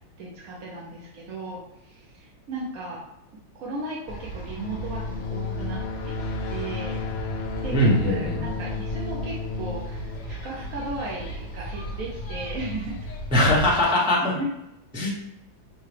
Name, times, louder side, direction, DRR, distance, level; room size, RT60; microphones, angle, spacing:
voice 1, 0.2-3.0 3.5-7.0 7.6-13.1 14.3-14.5, right 2 dB, 60° right, -4 dB, 1.0 m, -36 dB
sound 1, 4.1-13.8, right 1 dB, 65° left, 1.4 m, -35 dB
sound 2, 4.6-11.3, left 6 dB, 90° left, 1.5 m, -34 dB
voice 2, 7.7-8.4 13.3-14.3 14.9-15.1, left 1 dB, 5° right, -6 dB, 0.6 m, -21 dB
5.6 x 2.3 x 3.3 m, 0.87 s
omnidirectional pair, 2.1 m